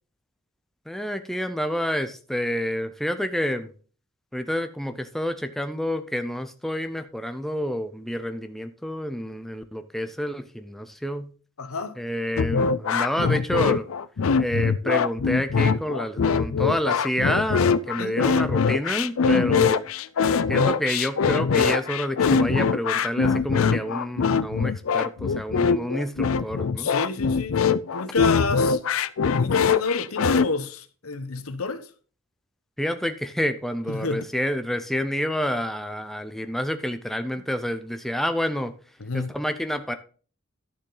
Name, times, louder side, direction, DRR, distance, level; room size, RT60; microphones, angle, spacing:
voice 1, 0.9-3.7 4.3-11.3 12.0-13.9 14.4-19.9 20.5-26.9 32.8-38.7 39.1-39.9, equal, ahead, 0.6 m, -28 dB
voice 2, 11.6-11.9 18.0-18.2 26.8-27.6 27.9-28.8 29.3-31.9 33.9-34.3 39.0-39.3, left 3 dB, 85° left, 1.0 m, -29 dB
sound 1, 12.4-30.5, left 5 dB, 70° left, 0.5 m, -22 dB
11.5 x 6.7 x 3.9 m
head